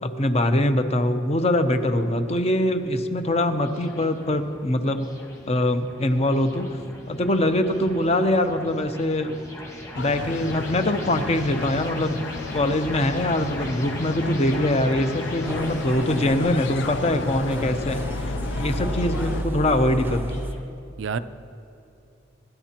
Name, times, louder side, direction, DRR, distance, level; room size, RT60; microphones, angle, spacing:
voice 1, 0.0-5.1 5.5-6.8 7.1-9.3 9.9-20.2, left 1 dB, 35° left, 8 dB, 0.7 m, -23 dB
sound 1, 2.0-20.6, left 1 dB, 15° left, 1.4 m, -41 dB
sound 2, 9.9-19.4, left 4 dB, 60° left, 0.4 m, -33 dB
sound 3, 15.4-20.5, equal, 10° right, 0.6 m, -32 dB
voice 2, 19.2-19.6 21.0-21.2, right 6 dB, 70° right, 13 dB, 0.4 m, -32 dB
25.5 x 11.0 x 2.9 m, 2.8 s
head